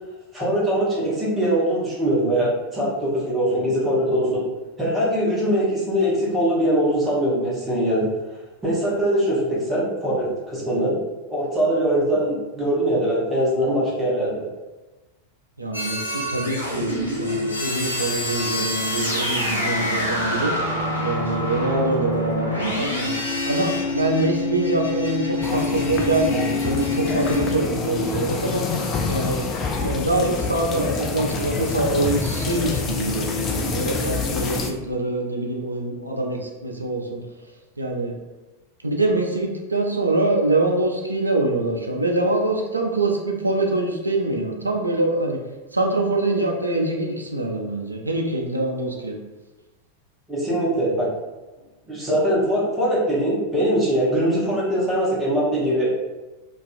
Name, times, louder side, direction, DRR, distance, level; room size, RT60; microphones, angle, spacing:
voice 1, 0.3-4.5 4.8-8.1 8.6-10.9 11.3-14.4 50.3-51.1 51.9-55.9, right 1 dB, 10° right, -7 dB, 0.9 m, -22 dB
voice 2, 15.6-20.5 21.0-23.1 23.5-28.7 29.1-29.4 29.8-37.2 37.8-38.1 38.8-45.4 45.7-49.2, right 2 dB, 80° right, 1 dB, 0.4 m, -24 dB
sound 1, 15.7-27.6, left 2 dB, 80° left, 0.6 m, -26 dB
sound 2, 25.4-34.7, left 4 dB, 30° left, 0.3 m, -27 dB
2.5 x 2.3 x 2.5 m, 1.2 s
figure-of-eight pair, 90°, 0 cm